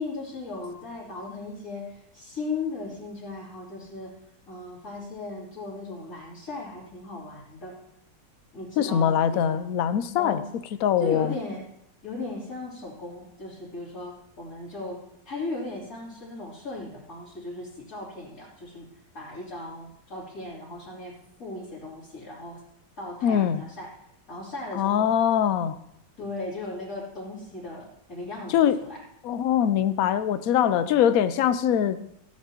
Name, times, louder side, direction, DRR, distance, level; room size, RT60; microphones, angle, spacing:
voice 1, 0.0-4.1 4.5-7.7 8.5-9.7 10.2-10.4 11.0-11.6 12.0-18.9 19.1-22.6 23.0-23.9 24.3-25.1 26.2-28.6 28.8-29.0, left 2 dB, 50° left, -10 dB, 3.7 m, -37 dB
voice 2, 8.8-10.4 10.8-11.3 23.2-23.6 24.7-25.8 28.5-28.8 29.2-32.0, left 9 dB, 65° left, 13 dB, 0.9 m, -22 dB
16.5 x 9.4 x 2.9 m, 0.78 s
omnidirectional pair, 1.9 m